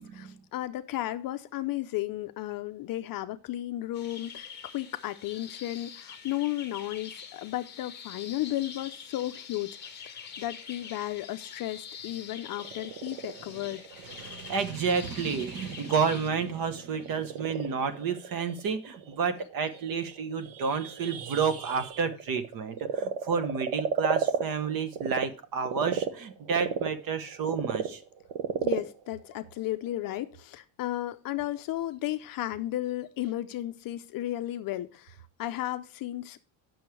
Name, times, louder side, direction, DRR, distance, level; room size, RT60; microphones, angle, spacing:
voice 1, 0.0-13.8 28.6-36.4, left 14 dB, 45° left, 0.6 m, -34 dB
sound 1, 3.9-16.3, left 7 dB, 20° left, 1.2 m, -45 dB
Frog, 12.4-25.3 25.6-30.3, right 7 dB, 90° right, 1.3 m, -34 dB
voice 2, 14.0-28.0, right 6 dB, 45° right, 1.0 m, -30 dB
8.7 x 6.3 x 4.6 m
cardioid pair, 160°, 48 cm